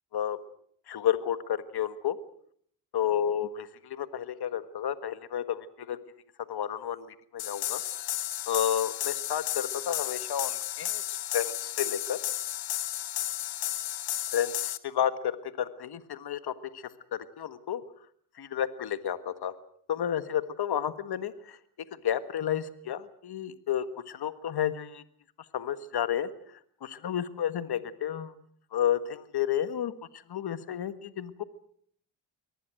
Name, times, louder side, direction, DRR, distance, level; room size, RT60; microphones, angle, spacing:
voice 1, 0.9-2.2 2.9-6.0 6.5-7.8 8.5-12.2 14.3-17.8 18.4-19.5 19.9-21.6 22.0-25.0 25.5-28.3 28.7-31.4, left 9 dB, 60° left, 12 dB, 1.7 m, -31 dB
sound 1, 7.4-14.8, left 13 dB, 85° left, 1.3 m, -33 dB
24.0 x 18.5 x 7.8 m, 0.63 s
cardioid pair, 80°, 43 cm